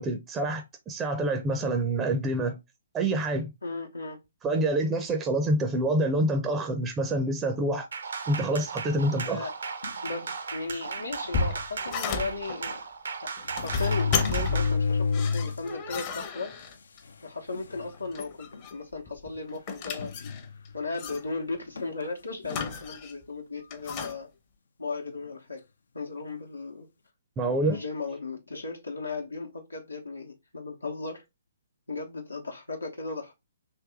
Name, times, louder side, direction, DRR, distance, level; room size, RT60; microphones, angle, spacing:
voice 1, 0.0-2.6 2.9-3.5 4.4-7.9 8.3-9.5 27.4-27.8, right 1 dB, 15° right, 0.5 m, -27 dB
voice 2, 3.6-4.2 9.2-9.5 10.0-12.8 13.4-16.5 17.2-20.1 20.7-24.3 24.8-25.6 25.9-26.9 27.7-31.2 31.9-33.3, left 3 dB, 85° left, 0.9 m, -36 dB
sound 1, 7.9-14.8, right 5 dB, 65° right, 0.7 m, -36 dB
sound 2, 9.8-10.1 10.9-11.0 11.3-11.4 12.7-12.8 13.4-15.7 16.2-16.3 17.1-17.2 17.5-17.9 18.5-18.7 20.0-20.8 21.8-22.0, left 5 dB, 65° left, 0.4 m, -29 dB
sound 3, 11.0-12.6 13.4-14.8 15.1-17.0 17.9-18.8 19.1-20.7 21.0-21.2 22.4-23.2 23.7-24.2, left 4 dB, 30° left, 0.7 m, -33 dB
3.5 x 2.9 x 3.4 m
figure-of-eight pair, 130°, 0 cm